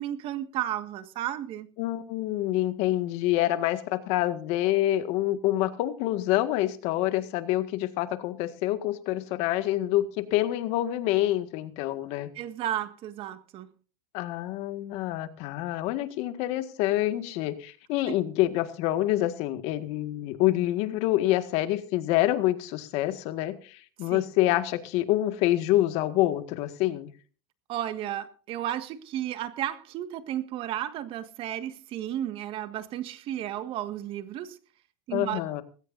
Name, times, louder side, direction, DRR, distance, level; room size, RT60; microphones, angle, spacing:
voice 1, 0.0-1.7 12.4-13.7 18.1-18.2 24.1-24.3 27.7-34.6 35.1-35.4, right 12 dB, 50° right, 11 dB, 1.7 m, -33 dB
voice 2, 1.8-12.3 14.1-27.1 35.1-35.6, left 15 dB, 60° left, 10 dB, 1.8 m, -27 dB
20.0 x 16.5 x 2.6 m, 0.39 s
supercardioid pair, 125°, 12 cm